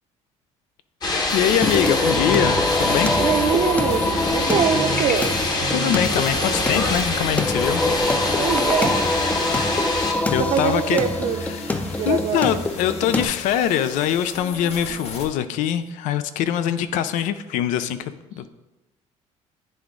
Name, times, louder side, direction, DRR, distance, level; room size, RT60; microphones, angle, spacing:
sound 1, 1.0-10.1, left 2 dB, 30° left, 1.0 m, -25 dB
voice 1, 1.3-3.1 5.7-7.8 9.4-11.0 11.5-11.6 12.0-18.5, left 10 dB, 80° left, 12 dB, 0.5 m, -23 dB
sound 2, 1.3-15.3, left 2 dB, 55° left, 1.1 m, -35 dB
Singing, 1.6-13.2, left 2 dB, 10° left, 0.4 m, -24 dB
voice 2, 3.2-5.4 8.4-9.0 10.4-11.4 12.0-12.6, right 8 dB, 55° right, 8 dB, 0.6 m, -23 dB
9.9 x 3.5 x 3.8 m, 1.0 s
cardioid pair, 120°, 13 cm